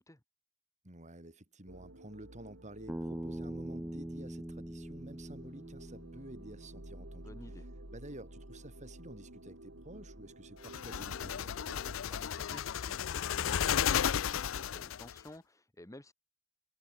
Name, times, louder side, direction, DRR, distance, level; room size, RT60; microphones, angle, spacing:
voice 1, 0.8-7.3 7.9-11.6, right 1 dB, 40° right, 4.8 m, -50 dB
sound 1, 1.7-11.9, right 1 dB, 75° right, 3.2 m, -52 dB
Bass guitar, 2.9-7.1, right 1 dB, 10° right, 0.5 m, -43 dB
voice 2, 7.2-7.7 11.9-16.1, left 1 dB, 15° left, 2.0 m, -54 dB
sound 2, 10.6-15.2, left 9 dB, 85° left, 0.5 m, -33 dB
head